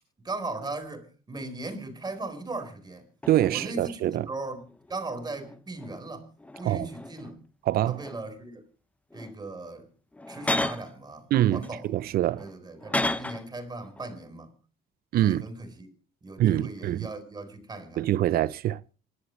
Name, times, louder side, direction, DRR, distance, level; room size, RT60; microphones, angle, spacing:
voice 1, 0.2-3.1 3.5-4.6 4.9-6.3 6.6-7.4 7.9-8.6 9.1-9.9 10.3-12.0 12.4-14.5 15.2-15.9 16.2-18.1, right 2 dB, 25° right, 4.2 m, -38 dB
sound 1, 2.6-2.7 3.2-3.7 4.5-6.1 6.4-7.4 7.8-8.4 9.1-9.4 10.1-11.0 11.6-13.5 13.8-14.1, left 1 dB, 10° left, 0.8 m, -34 dB
voice 2, 3.3-4.3 6.6-6.9 7.7-8.0 11.3-12.4 15.1-15.4 16.4-17.1 18.0-18.8, right 13 dB, 65° right, 0.7 m, -25 dB
27.5 x 11.5 x 3.2 m
cardioid pair, 110°, 17 cm